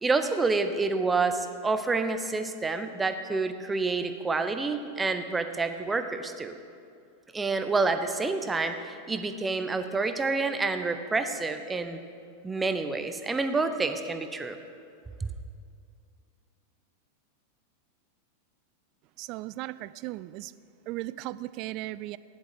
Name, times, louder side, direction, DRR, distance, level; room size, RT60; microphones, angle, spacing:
voice 1, 0.0-6.6 7.3-12.0 12.4-14.6 15.2-15.3, right 3 dB, 15° right, 9 dB, 0.8 m, -28 dB
voice 2, 19.2-20.5 20.9-22.2, right 17 dB, 40° right, 17 dB, 0.3 m, -36 dB
14.5 x 10.5 x 4.9 m, 2.4 s
figure-of-eight pair, 90°, 0 cm